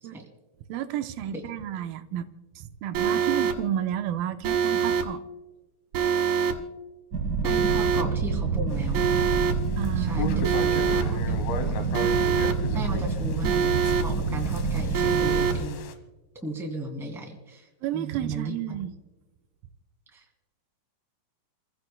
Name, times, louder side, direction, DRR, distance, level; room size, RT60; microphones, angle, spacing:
voice 1, 0.7-2.3 2.6-5.2 9.8-10.6 17.8-18.9, right 11 dB, 85° right, 8 dB, 2.4 m, -31 dB
Alarm, 2.9-3.5 4.4-5.0 5.9-6.5 7.4-8.0 8.9-9.5 10.4-11.0 11.9-12.5 13.4-14.0 14.9-15.5, right 8 dB, 60° right, 2.6 m, -24 dB
sound 1, 7.1-15.6, right 4 dB, 45° right, 1.3 m, -28 dB
voice 2, 7.4-9.1 9.9-11.8 12.7-13.7 14.0-15.8 16.4-17.7 17.9-18.8 20.1-20.2, right 2 dB, ahead, 0 dB, 1.8 m, -35 dB
sound 2, 8.7-15.9, left 4 dB, 85° left, 3.1 m, -38 dB
30.0 x 16.0 x 2.2 m, 1.2 s
omnidirectional pair, 4.2 m